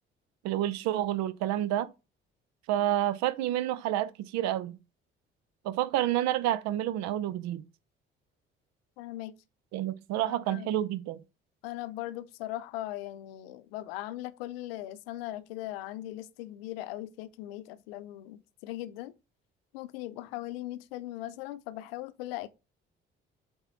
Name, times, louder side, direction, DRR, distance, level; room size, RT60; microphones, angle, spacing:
voice 1, 0.4-1.9 2.7-4.8 5.6-7.6 9.7-11.2, right 12 dB, 65° right, 0.7 m, -29 dB
voice 2, 9.0-9.3 10.2-10.7 11.6-19.1 19.7-22.5, left 15 dB, 75° left, 0.6 m, -39 dB
7.9 x 3.7 x 4.5 m
hypercardioid pair, 45°, 29 cm